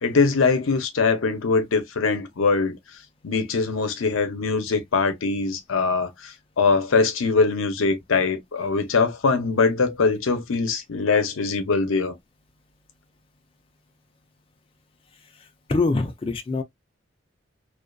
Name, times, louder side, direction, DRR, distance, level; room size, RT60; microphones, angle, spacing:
voice 1, 0.0-2.8 3.2-12.2, left 4 dB, 90° left, 0.6 m, -22 dB
voice 2, 15.2-16.6, left 3 dB, 25° left, 0.3 m, -25 dB
2.5 x 2.3 x 2.2 m
head